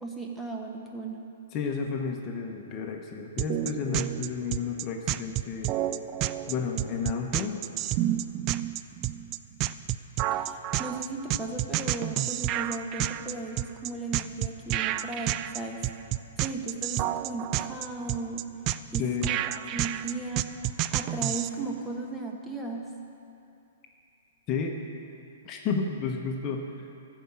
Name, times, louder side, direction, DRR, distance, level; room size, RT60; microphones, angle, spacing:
voice 1, 0.0-1.2 10.3-15.8 16.4-18.4 18.9-19.4 19.7-20.5 20.9-22.8, right 3 dB, 5° right, 0 dB, 1.2 m, -36 dB
voice 2, 1.5-5.7 6.5-7.6 19.0-19.4 24.5-24.8 25.4-26.7, left 5 dB, 30° left, 2 dB, 1.0 m, -31 dB
sound 1, 3.4-21.5, right 13 dB, 35° right, 0.3 m, -29 dB
14.5 x 4.9 x 7.4 m, 2.6 s
figure-of-eight pair, 115°, 0 cm